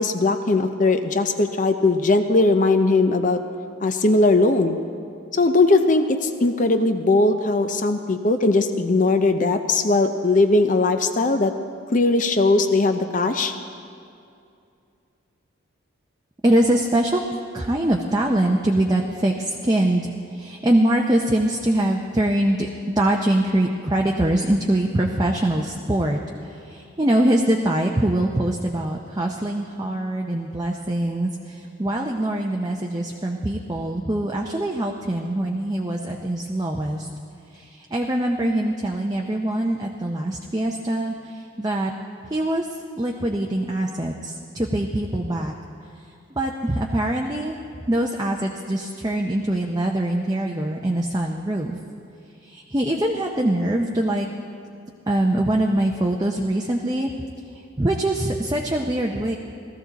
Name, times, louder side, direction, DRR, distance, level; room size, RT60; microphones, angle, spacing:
voice 1, 0.0-3.4 3.8-4.8 5.3-11.5 11.9-13.5, left 2 dB, 40° left, 7 dB, 0.6 m, -19 dB
voice 2, 16.4-17.2 17.5-22.7 23.0-37.1 37.5-41.9 42.3-42.7 43.0-45.5 46.4-47.6 47.9-51.8 52.4-54.3 55.1-57.1 57.8-59.4, right 1 dB, 20° right, 0 dB, 0.6 m, -23 dB
17.5 x 14.0 x 4.0 m, 2.5 s
head